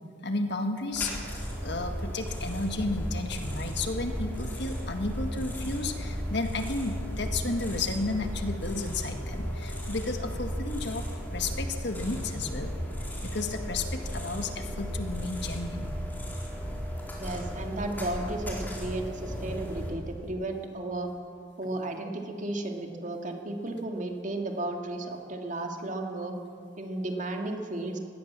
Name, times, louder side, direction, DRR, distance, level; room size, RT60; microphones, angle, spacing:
voice 1, 0.2-1.1 1.6-11.1 11.3-12.7 13.2-15.9, left 3 dB, 60° left, 6 dB, 1.8 m, -33 dB
sound 1, 0.9-19.9, equal, 10° left, 4.1 m, -35 dB
voice 2, 17.2-21.1 21.6-26.3 26.8-28.0, right 2 dB, 40° right, 3 dB, 2.3 m, -34 dB
21.0 x 17.0 x 7.5 m, 2.2 s
head